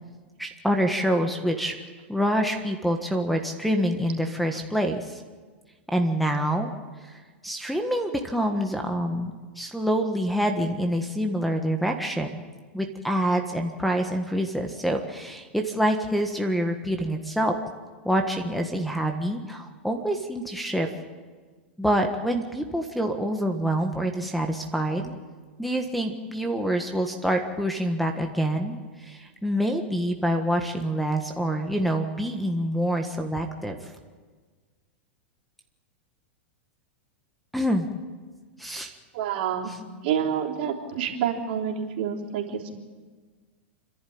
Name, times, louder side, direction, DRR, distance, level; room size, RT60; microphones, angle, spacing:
voice 1, 0.4-1.7 2.1-5.2 5.9-6.7 7.0-7.2 7.4-12.3 12.7-17.5 18.0-20.9 21.8-25.1 25.6-33.7 37.5-37.9 38.6-38.9, equal, ahead, 5 dB, 1.5 m, -26 dB
voice 2, 39.1-39.7 40.0-42.7, right 8 dB, 60° right, -1 dB, 3.5 m, -28 dB
29.5 x 11.5 x 8.7 m, 1.4 s
hypercardioid pair, 125°, 6 cm